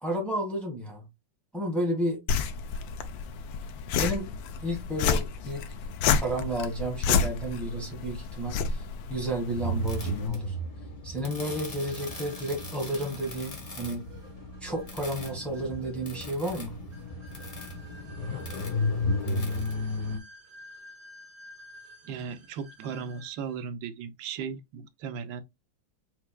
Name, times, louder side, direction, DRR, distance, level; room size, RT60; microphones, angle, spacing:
voice 1, 0.0-1.1 1.5-2.2 3.9-4.3 4.6-5.7 6.2-8.8 9.1-10.5 11.0-14.0 14.6-16.8, right 1 dB, ahead, 1.4 m, -31 dB
sound 1, 2.3-10.3, left 6 dB, 90° left, 1.4 m, -30 dB
sound 2, 9.6-20.2, left 2 dB, 35° left, 0.6 m, -34 dB
sound 3, 11.6-23.5, right 1 dB, 65° right, 2.1 m, -52 dB
voice 2, 22.0-25.4, right 6 dB, 85° right, 1.4 m, -36 dB
4.7 x 4.5 x 2.2 m
omnidirectional pair, 2.0 m